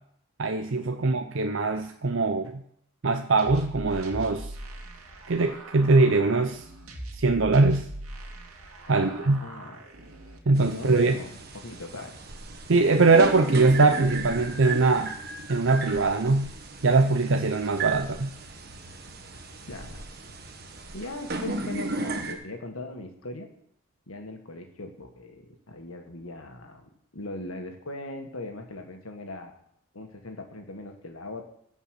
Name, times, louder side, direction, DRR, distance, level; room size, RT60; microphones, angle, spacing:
voice 1, 0.4-2.6 3.0-4.5 5.3-6.6 7.2-7.9 8.9-9.4 10.5-11.2 12.7-15.1 15.5-16.5 16.8-18.3, right 3 dB, 60° right, 6 dB, 0.6 m, -22 dB
sound 1, 3.4-10.4, right 1 dB, 85° right, 2.2 m, -41 dB
voice 2, 8.9-9.8 10.7-12.2 19.7-20.0 20.9-23.5 24.1-29.6 29.9-31.4, left 2 dB, 75° left, 4 dB, 1.8 m, -40 dB
sound 2, 10.5-22.3, right 3 dB, 45° right, 1.4 m, -36 dB
16.0 x 5.5 x 6.7 m, 0.70 s
head